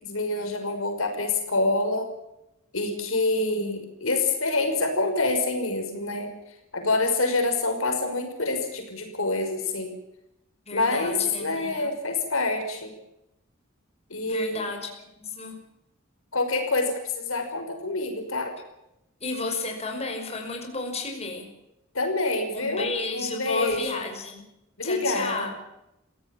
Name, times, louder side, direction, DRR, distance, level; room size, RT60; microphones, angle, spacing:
voice 1, 0.0-2.1 2.7-6.3 6.7-10.0 10.7-12.9 14.1-14.7 16.3-18.5 21.9-24.1 24.8-25.5, left 2 dB, 80° left, 5 dB, 5.8 m, -26 dB
voice 2, 10.7-11.9 14.3-14.9 15.2-15.5 19.2-21.5 22.5-24.5 24.8-25.5, left 3 dB, 30° left, 3 dB, 5.7 m, -32 dB
26.5 x 17.0 x 7.3 m, 0.87 s
head